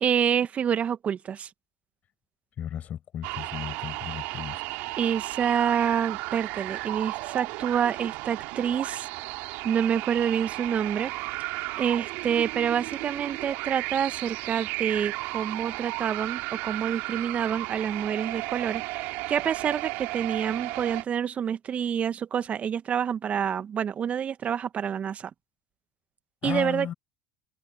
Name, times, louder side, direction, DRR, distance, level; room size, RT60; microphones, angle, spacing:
voice 1, 0.0-1.5 5.0-9.1 9.6-11.1 11.8-18.8 19.3-25.3 26.4-26.9, right 8 dB, 35° right, 1.8 m, -27 dB
voice 2, 2.6-4.6 26.4-26.9, left 10 dB, 40° left, 6.8 m, -34 dB
sound 1, 3.2-21.0, right 24 dB, 60° right, 2.8 m, -34 dB
hypercardioid pair, 75°, 4 cm